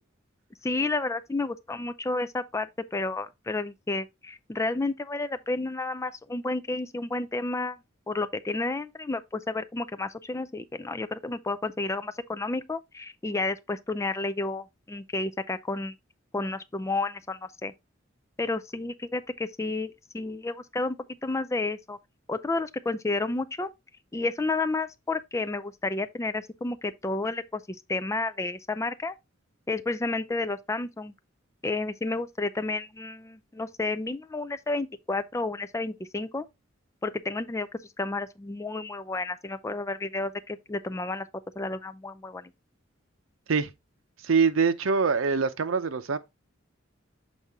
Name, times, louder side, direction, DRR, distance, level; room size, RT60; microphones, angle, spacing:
voice 1, 0.6-7.8 8.1-15.9 16.3-17.7 18.4-22.0 22.3-23.7 24.1-27.6 27.9-29.1 29.7-31.1 31.6-36.5 37.0-37.7 38.0-41.3 41.6-42.5, left 3 dB, 15° left, 0.4 m, -31 dB
voice 2, 44.2-46.2, right 5 dB, 90° right, 0.7 m, -24 dB
7.3 x 4.1 x 3.5 m
head